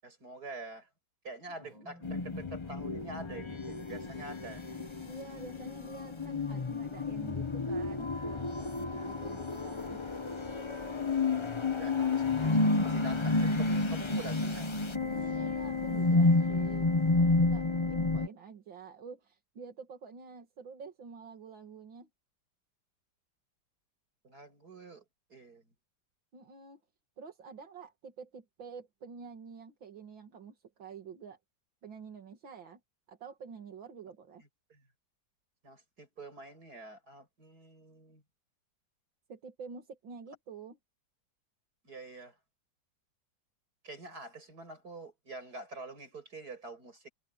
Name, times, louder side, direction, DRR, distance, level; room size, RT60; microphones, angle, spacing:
voice 1, 0.0-0.9 1.2-4.6 11.8-14.7 24.2-25.0 25.3-25.7 34.7-34.8 35.6-38.2 41.8-42.4 43.8-47.1, right 2 dB, 50° right, 7.5 m, -46 dB
sound 1, 1.6-6.8, left 1 dB, 85° left, 5.9 m, -57 dB
sound 2, 2.0-18.3, left 3 dB, 25° left, 0.7 m, -30 dB
voice 2, 5.1-10.0 15.0-16.9 17.2-22.1 26.3-26.8 27.2-31.4 31.8-32.8 33.1-34.4 39.3-40.8, right 5 dB, 80° right, 3.0 m, -48 dB
omnidirectional pair, 2.1 m